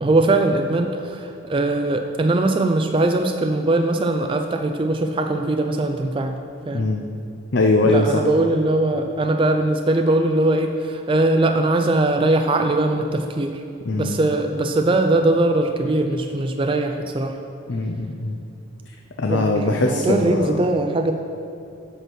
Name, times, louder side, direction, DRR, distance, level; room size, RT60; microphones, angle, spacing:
voice 1, 0.0-6.4 6.7-6.9 7.8-13.6 13.9-17.4 19.3-21.1, right 2 dB, 25° right, 5 dB, 0.3 m, -21 dB
voice 2, 7.5-8.2 13.9-14.2 17.7-18.4 18.9-20.6, left 2 dB, 55° left, 2 dB, 0.5 m, -21 dB
7.9 x 6.0 x 6.2 m, 2.6 s
head